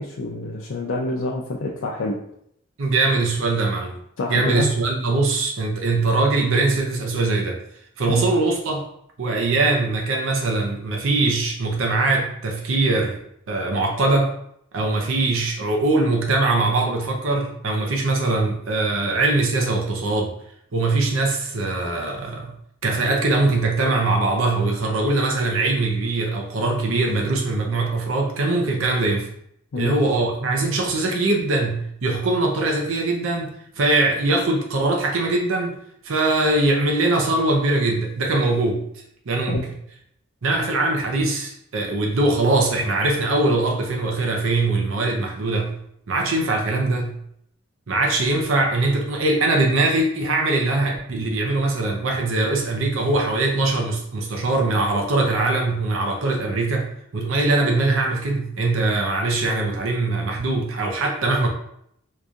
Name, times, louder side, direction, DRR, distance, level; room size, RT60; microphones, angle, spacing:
voice 1, 0.0-2.2 4.2-4.7 8.1-8.2 29.7-29.9 39.5-39.6, left 2 dB, 75° left, -2 dB, 0.4 m, -27 dB
voice 2, 2.8-3.9 4.3-7.6 8.0-8.9 9.2-13.2 13.5-14.3 14.7-20.3 20.7-22.5 22.8-29.3 29.7-35.8 36.0-39.7 40.4-45.7 46.1-47.2 47.9-56.9 57.1-61.5, right 2 dB, 75° right, 1 dB, 0.6 m, -22 dB
4.7 x 2.6 x 2.4 m, 0.71 s
head